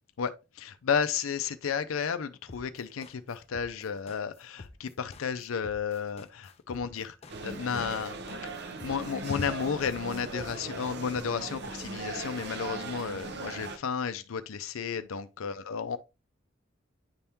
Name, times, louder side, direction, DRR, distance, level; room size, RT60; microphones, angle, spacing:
voice 1, 0.2-7.2 7.4-16.0, left 6 dB, 90° left, 0.5 m, -33 dB
sound 1, 2.5-10.9, left 3 dB, 30° left, 0.5 m, -49 dB
sound 2, 7.3-13.8, right 3 dB, 55° right, 0.7 m, -39 dB
9.7 x 3.5 x 2.8 m
head